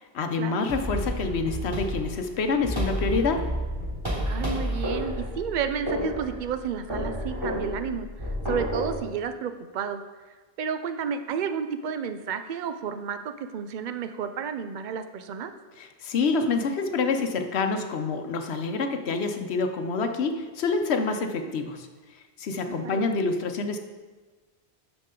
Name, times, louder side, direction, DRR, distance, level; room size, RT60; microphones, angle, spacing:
voice 1, 0.0-3.5 15.8-21.9 22.4-23.8, left 4 dB, 80° left, 6 dB, 1.0 m, -27 dB
sound 1, 0.7-9.0, equal, 25° right, 3.1 m, -31 dB
voice 2, 4.2-8.1 8.5-10.0 10.6-15.5 21.2-21.6 22.6-23.0, right 7 dB, 55° right, 9 dB, 0.6 m, -31 dB
12.0 x 5.0 x 3.8 m, 1.3 s
omnidirectional pair, 1.1 m